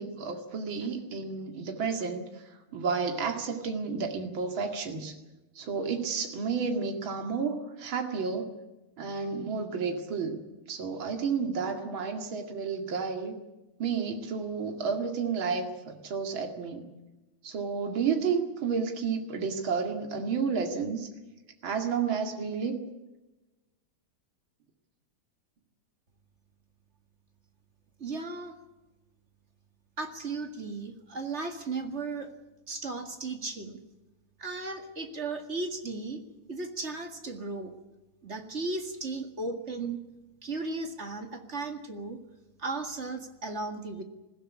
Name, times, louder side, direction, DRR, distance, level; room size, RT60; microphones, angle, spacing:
voice 1, 0.0-5.1 5.5-8.5 9.0-10.4 10.7-13.4 13.8-16.9 17.4-21.1 21.6-22.8, right 5 dB, 70° right, 4 dB, 3.0 m, -31 dB
voice 2, 28.0-28.5 30.0-32.3 32.7-33.8 34.4-36.2 36.5-37.7 38.2-40.0 40.4-42.2 42.6-44.0, right 3 dB, 35° right, 5 dB, 2.1 m, -35 dB
20.5 x 16.0 x 9.8 m, 1.1 s
omnidirectional pair, 2.3 m